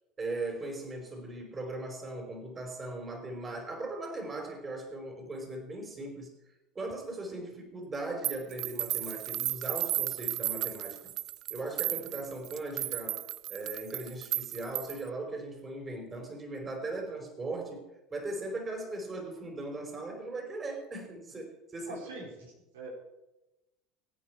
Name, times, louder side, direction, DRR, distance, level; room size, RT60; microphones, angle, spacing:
voice 1, 0.2-11.1 11.5-22.1, right 2 dB, 25° right, 3 dB, 4.8 m, -39 dB
sound 1, 8.2-15.1, right 15 dB, 55° right, 0.5 m, -34 dB
voice 2, 21.8-22.3 22.7-22.9, right 3 dB, 90° right, -1 dB, 4.4 m, -41 dB
24.0 x 9.2 x 4.8 m, 0.97 s
hypercardioid pair, 85°, 0 cm